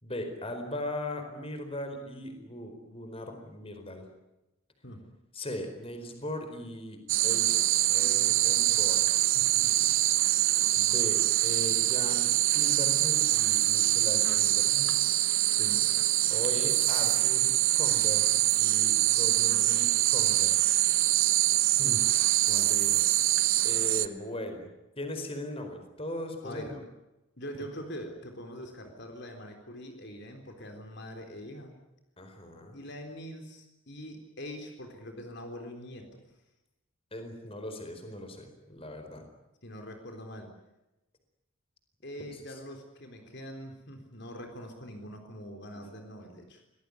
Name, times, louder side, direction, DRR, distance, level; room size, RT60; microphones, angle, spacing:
voice 1, 0.0-4.0 5.3-7.6 7.9-9.9 10.7-15.0 16.3-20.6 21.2-21.4 21.8-22.0 23.6-24.7 25.0-26.8 32.2-32.8 37.1-39.2 42.5-42.6, left 1 dB, 25° left, 6 dB, 4.6 m, -39 dB
sound 1, 7.1-24.1, right 14 dB, 70° right, 1.0 m, -24 dB
voice 2, 15.5-15.8 21.8-22.0 22.5-23.1 26.4-26.7 27.4-31.8 32.7-36.1 39.6-40.5 42.0-46.6, equal, 55° left, 4 dB, 3.8 m, -43 dB
25.5 x 19.0 x 9.8 m, 0.95 s
head